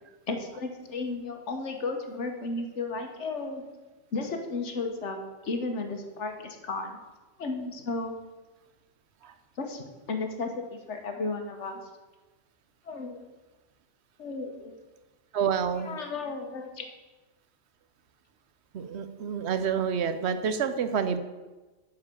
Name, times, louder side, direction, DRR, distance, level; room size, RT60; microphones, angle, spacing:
voice 1, 0.3-3.6 4.1-5.2 5.4-7.0 7.4-8.1 9.6-11.8 12.9-13.3 14.2-14.7 15.8-16.9, left 3 dB, 80° left, 4 dB, 1.5 m, -34 dB
voice 2, 15.3-15.9 18.7-21.2, right 7 dB, 70° right, 10 dB, 0.9 m, -28 dB
9.5 x 4.9 x 6.8 m, 1.2 s
omnidirectional pair, 1.2 m